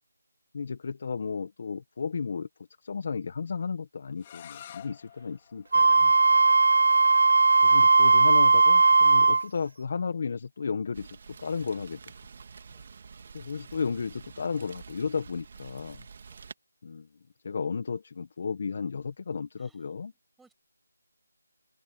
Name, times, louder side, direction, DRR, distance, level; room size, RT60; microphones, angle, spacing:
voice 1, 0.5-2.5 2.8-6.1 7.6-12.0 13.3-16.1 16.8-17.1 17.4-20.1, left 5 dB, 40° left, 1.4 m, -33 dB
sound 1, 4.2-9.9, left 10 dB, 20° left, 4.1 m, -52 dB
Wind instrument woodwind instrument, 5.7-9.4, right 4 dB, 55° right, 0.3 m, -18 dB
voice 2, 6.3-6.6 12.7-12.9 16.3-16.4 19.6-20.5, right 4 dB, ahead, 7.5 m, -65 dB
Rain, 10.9-16.5, right 5 dB, 35° right, 1.9 m, -48 dB
figure-of-eight pair, 170°, 0 cm